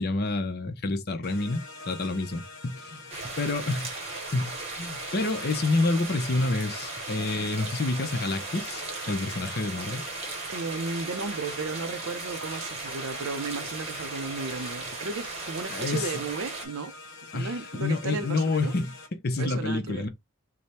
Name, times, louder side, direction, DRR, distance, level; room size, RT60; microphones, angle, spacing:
voice 1, 0.0-3.9 4.3-10.0 15.7-16.1 17.3-20.1, left 2 dB, 45° left, 0.6 m, -28 dB
sound 1, 1.2-19.1, left 2 dB, 65° left, 1.0 m, -45 dB
sound 2, 3.1-16.7, right 3 dB, 30° right, 0.9 m, -37 dB
voice 2, 10.5-16.9 17.3-18.7 19.4-20.1, right 4 dB, 75° right, 0.6 m, -34 dB
3.4 x 2.1 x 4.1 m
head